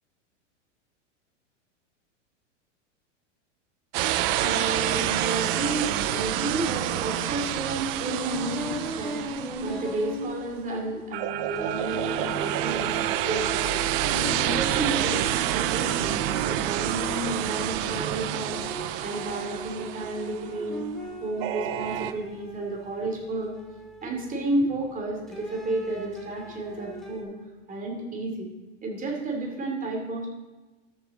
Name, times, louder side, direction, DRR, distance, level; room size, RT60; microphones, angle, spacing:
sound 1, 3.9-10.3 11.1-20.5 21.4-22.1, right 13 dB, 50° right, 0.7 m, -28 dB
voice 1, 4.4-12.9 13.3-18.6 19.0-20.8 21.2-23.5 24.0-27.3 27.7-28.5 28.8-30.3, right 2 dB, 20° right, 0 dB, 2.9 m, -32 dB
sound 2, 7.8-11.3 11.5-18.0 18.4-24.7 25.3-27.2, equal, ahead, 2.6 m, -38 dB
13.0 x 7.3 x 3.8 m, 1.2 s
hypercardioid pair, 120°, 37 cm